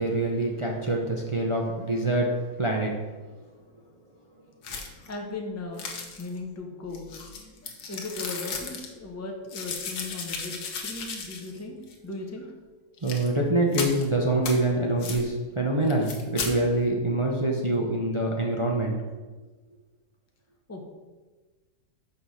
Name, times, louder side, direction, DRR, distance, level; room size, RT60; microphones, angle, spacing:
voice 1, 0.0-2.9 13.0-18.9, right 2 dB, 35° right, -1 dB, 0.4 m, -25 dB
sound 1, 4.6-5.1 5.8-6.4 6.9-8.9 9.5-11.6 11.9-12.0 13.0-13.3 13.7-14.0 14.4-14.6 15.0-15.2 15.9-16.5, left 5 dB, 85° left, 1.6 m, -35 dB
voice 2, 5.1-5.9 6.2-7.1 7.9-11.8 12.0-12.5 20.7-20.8, left 2 dB, 15° left, 1 dB, 0.7 m, -37 dB
6.2 x 4.7 x 6.3 m, 1.3 s
omnidirectional pair, 1.7 m